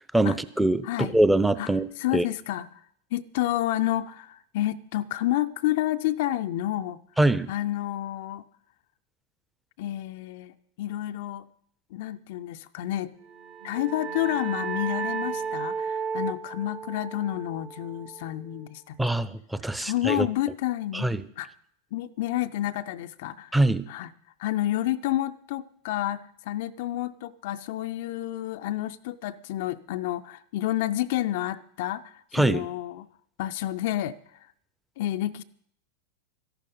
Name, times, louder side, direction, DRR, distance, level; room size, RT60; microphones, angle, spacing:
voice 1, 0.1-1.8 2.1-2.2 7.2-7.5 19.0-20.3 20.9-21.2 23.5-23.8 32.3-32.7, right 1 dB, 5° right, 0.7 m, -23 dB
voice 2, 0.8-1.2 1.6-1.7 2.0-2.8 3.1-7.0 7.5-8.4 9.8-11.5 11.9-13.1 13.6-19.0 19.8-21.1 21.4-21.5 21.9-23.6 23.9-24.1 24.4-33.1 33.4-34.5 35.0-35.4, left 14 dB, 55° left, 0.4 m, -30 dB
sound 1, 13.3-18.6, right 6 dB, 40° right, 1.1 m, -34 dB
13.5 x 11.5 x 5.4 m
figure-of-eight pair, 85°, 0 cm